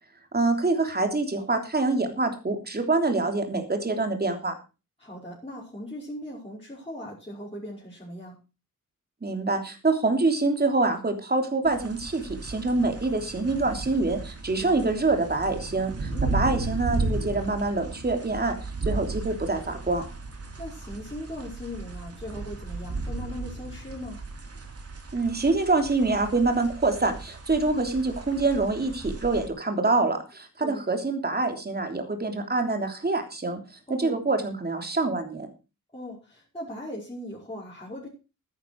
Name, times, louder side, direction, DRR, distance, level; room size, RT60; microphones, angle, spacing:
voice 1, 0.3-4.5 9.2-18.5 18.8-20.0 25.1-33.6 33.9-35.5, right 3 dB, 30° right, 5 dB, 3.2 m, -25 dB
voice 2, 5.0-8.4 14.6-15.0 16.1-16.4 20.6-24.2 30.6-30.8 33.9-34.3 35.9-38.1, left 1 dB, 15° left, -7 dB, 5.6 m, -39 dB
sound 1, 11.7-29.5, right 3 dB, 45° right, 2.8 m, -35 dB
13.0 x 10.5 x 4.7 m, 0.31 s
cardioid pair, 90°, 33 cm